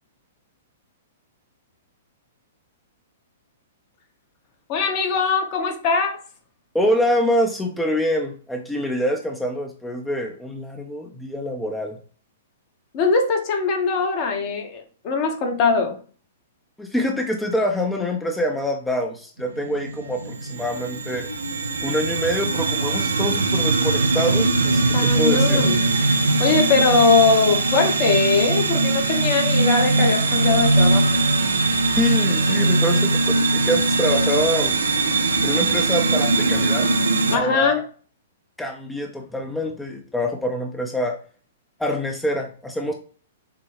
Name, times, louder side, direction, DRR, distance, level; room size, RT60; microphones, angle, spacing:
voice 1, 4.7-6.2 12.9-16.0 24.9-25.8 26.4-31.2 37.3-37.8, left 4 dB, 40° left, 1.1 m, -21 dB
voice 2, 6.7-12.0 16.8-21.3 21.8-25.6 32.0-34.8 35.4-36.9 37.3-37.7 38.6-41.1 41.8-42.9, equal, 5° left, 0.6 m, -25 dB
sound 1, 19.4-37.4, right 3 dB, 85° right, 0.6 m, -20 dB
6.6 x 2.3 x 3.3 m
hypercardioid pair, 115°, 0 cm